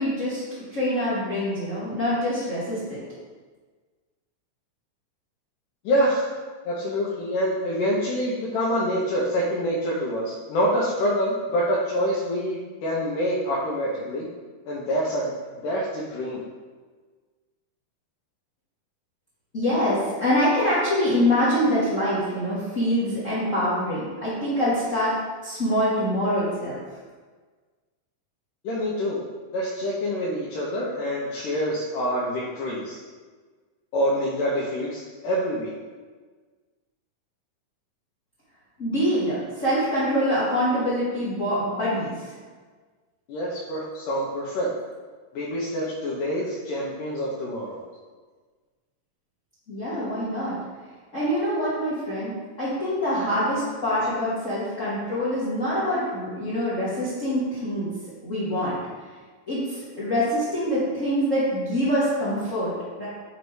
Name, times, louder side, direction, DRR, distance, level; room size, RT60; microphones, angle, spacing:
voice 1, 0.0-3.0 19.5-25.1 25.4-26.8 38.8-42.3 49.7-50.6 51.1-52.3 52.6-57.9 58.2-58.7 59.5-63.1, equal, 60° left, -10 dB, 0.8 m, -25 dB
voice 2, 5.8-6.3 6.6-14.3 14.7-15.3 15.6-16.4 28.6-29.2 29.5-33.0 33.9-35.7 43.3-44.7 45.3-47.8, equal, 80° left, -5 dB, 2.4 m, -26 dB
7.5 x 3.1 x 4.6 m, 1.4 s
omnidirectional pair, 3.8 m